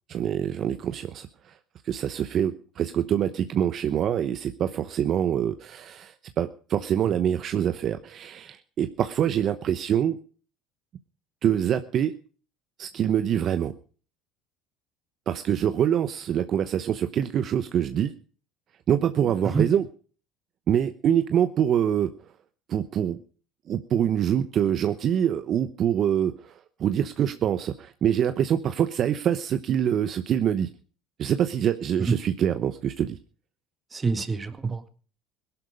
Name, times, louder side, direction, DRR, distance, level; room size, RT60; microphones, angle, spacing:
voice 1, 0.1-1.5 1.8-10.2 11.4-12.1 12.8-13.7 15.3-18.1 18.9-19.9 20.7-22.1 22.7-23.2 23.7-26.5 26.8-30.7 31.2-33.2, right 9 dB, 50° right, 10 dB, 0.9 m, -25 dB
voice 2, 33.9-34.9, right 5 dB, 25° right, 10 dB, 1.9 m, -26 dB
17.5 x 12.0 x 5.2 m, 0.41 s
supercardioid pair, 90°, 0 cm